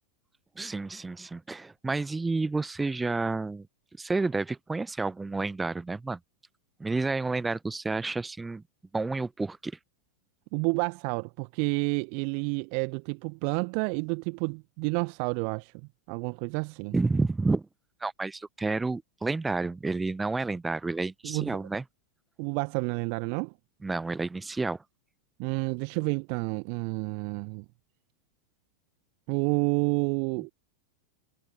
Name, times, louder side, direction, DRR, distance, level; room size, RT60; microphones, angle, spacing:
voice 1, 0.6-3.7 4.0-6.2 6.8-8.6 8.9-9.7 16.9-17.6 18.0-21.8 23.8-24.8, right 3 dB, 10° right, 1.1 m, -30 dB
voice 2, 10.5-15.7 16.1-16.9 21.2-21.5 22.4-23.5 25.4-27.6 29.3-30.5, right 40 dB or more, 45° right, 1.3 m, -29 dB
figure-of-eight pair, 90°, 0 cm